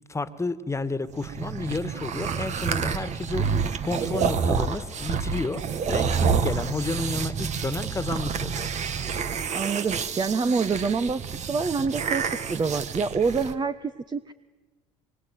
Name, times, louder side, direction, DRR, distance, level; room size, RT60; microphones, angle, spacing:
voice 1, 0.1-5.6 5.9-8.7, left 3 dB, 20° left, 13 dB, 1.9 m, -31 dB
sound 1, 1.1-13.5, right 6 dB, 50° right, 2.0 m, -28 dB
voice 2, 9.5-11.2 11.5-14.3, right 5 dB, 30° right, 10 dB, 1.3 m, -26 dB
25.0 x 23.0 x 9.4 m, 1.3 s
hypercardioid pair, 65°, 15 cm